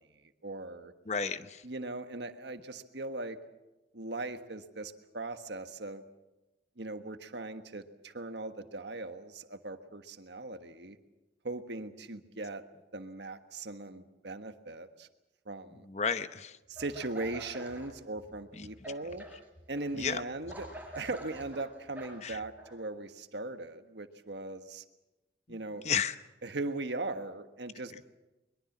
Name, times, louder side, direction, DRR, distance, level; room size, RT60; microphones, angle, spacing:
voice 1, 0.4-0.9 1.6-3.4 3.9-6.0 6.8-11.0 11.4-12.6 12.9-15.1 15.4-15.9 16.7-19.2 19.7-20.7 20.9-24.8 25.5-25.8 26.4-28.1, right 2 dB, 75° right, 8 dB, 1.4 m, -39 dB
voice 2, 1.1-1.6 15.9-16.5 18.6-18.7 20.0-20.2 22.2-22.4 25.8-26.1, left 6 dB, 40° left, 12 dB, 0.8 m, -32 dB
sound 1, 16.8-17.9 18.2-22.7, right 1 dB, 10° right, 4.7 m, -47 dB
22.5 x 22.5 x 7.3 m, 1.0 s
head